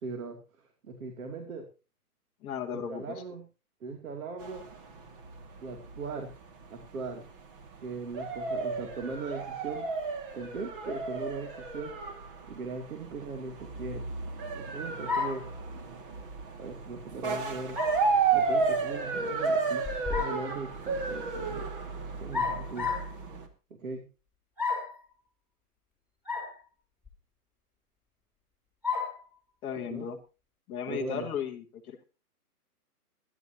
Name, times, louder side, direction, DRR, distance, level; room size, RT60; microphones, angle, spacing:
voice 1, 0.0-1.7 2.7-3.4 3.8-4.6 5.6-6.4 6.7-7.3 7.8-9.9 10.3-11.9 12.5-14.1 14.5-15.5 16.6-17.8 18.3-21.7 22.2-22.9 23.7-24.1 29.9-30.1 30.9-31.3, right 4 dB, 60° right, 4 dB, 2.9 m, -39 dB
voice 2, 2.4-3.2 29.6-30.2 30.7-32.0, left 8 dB, 10° left, -4 dB, 0.9 m, -36 dB
sound 1, 4.4-23.5, right 4 dB, 35° right, 2.3 m, -33 dB
sound 2, 15.1-15.5 17.8-18.1 19.8-20.5 22.3-23.1 24.6-25.0 26.3-26.5 27.1-27.2 28.8-29.2, left 5 dB, 5° right, 3.9 m, -31 dB
22.5 x 11.0 x 2.9 m, 0.32 s
hypercardioid pair, 155°, 46 cm